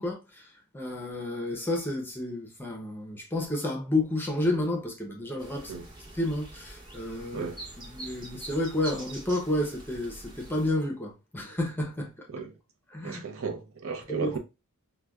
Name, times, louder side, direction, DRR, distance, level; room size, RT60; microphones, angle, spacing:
voice 1, 0.0-5.7 6.1-7.5 7.8-12.1 12.9-13.2 14.1-14.4, left 1 dB, 10° left, 0.6 m, -31 dB
sound 1, 5.4-10.7, right 2 dB, 20° right, 1.1 m, -44 dB
voice 2, 13.0-14.4, right 5 dB, 60° right, 0.6 m, -34 dB
4.8 x 2.2 x 2.2 m
head